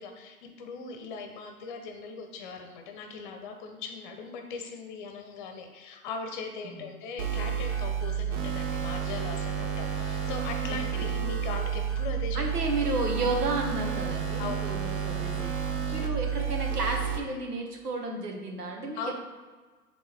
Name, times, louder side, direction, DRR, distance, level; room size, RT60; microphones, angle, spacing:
voice 1, 0.0-12.4 14.4-14.7 15.9-16.0 19.0-19.1, left 4 dB, 30° left, 4 dB, 0.9 m, -39 dB
sound 1, 7.2-17.2, right 8 dB, 35° right, 0.8 m, -30 dB
voice 2, 10.7-11.1 12.3-15.6 15.9-19.1, right 2 dB, 85° right, 1 dB, 1.5 m, -32 dB
7.5 x 3.7 x 3.5 m, 1.4 s
hypercardioid pair, 130°, 45 cm